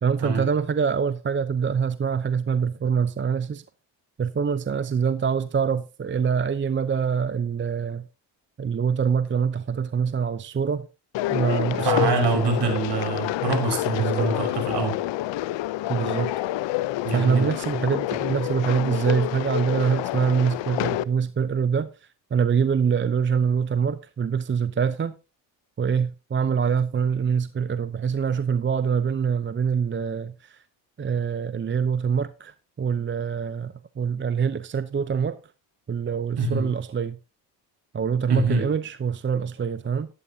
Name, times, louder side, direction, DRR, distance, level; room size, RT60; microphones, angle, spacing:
voice 1, 0.0-3.6 4.2-8.0 8.6-10.9 11.3-12.7 14.0-14.3 15.9-16.3 17.1-21.9 22.3-25.1 25.8-30.6 31.0-35.4 35.9-37.2 37.9-40.1, right 6 dB, 25° right, 0.7 m, -25 dB
sound 1, 11.1-21.0, left 15 dB, 70° left, 0.7 m, -28 dB
voice 2, 11.8-15.0 17.0-17.5 36.4-36.7 38.3-38.7, right 3 dB, 60° right, 5.5 m, -25 dB
12.0 x 11.0 x 2.8 m
supercardioid pair, 75°, 47 cm